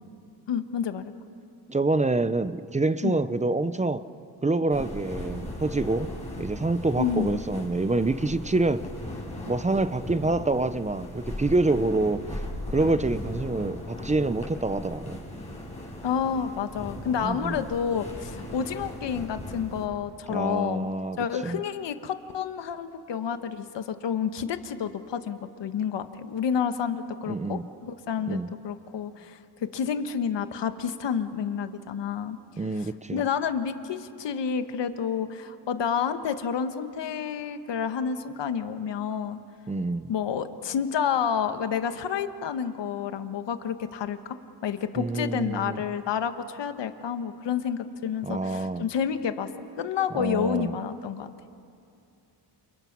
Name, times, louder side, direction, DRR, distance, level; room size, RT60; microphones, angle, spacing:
voice 1, 0.5-1.1 3.0-3.2 7.0-7.4 16.0-20.9 21.2-28.4 28.6-32.4 33.1-39.4 40.1-44.4 44.6-49.5 49.8-51.3, left 7 dB, 75° left, 1.5 m, -29 dB
voice 2, 1.7-4.1 4.4-6.1 6.4-8.8 9.5-12.4 12.7-15.2 17.2-17.6 20.3-21.6 27.3-27.7 28.3-28.5 32.6-33.2 39.7-40.1 45.0-45.8 48.2-48.9 50.1-50.7, right 2 dB, 15° right, 0.7 m, -26 dB
sound 1, 4.7-19.8, left 1 dB, 15° left, 6.6 m, -38 dB
29.0 x 28.5 x 6.1 m
cardioid pair, 120°, 43 cm